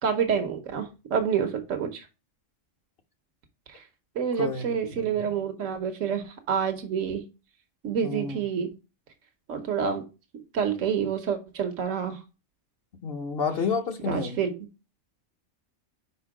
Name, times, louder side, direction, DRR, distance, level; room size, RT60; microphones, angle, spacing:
voice 1, 0.0-2.1 3.7-3.8 4.1-7.2 7.8-8.7 9.5-10.0 10.5-12.2 14.0-14.5, right 7 dB, 90° right, 1.3 m, -28 dB
voice 2, 4.4-4.7 5.0-5.1 8.0-8.4 13.0-14.4, left 5 dB, 55° left, 0.9 m, -29 dB
5.2 x 4.4 x 4.8 m
omnidirectional pair, 1.3 m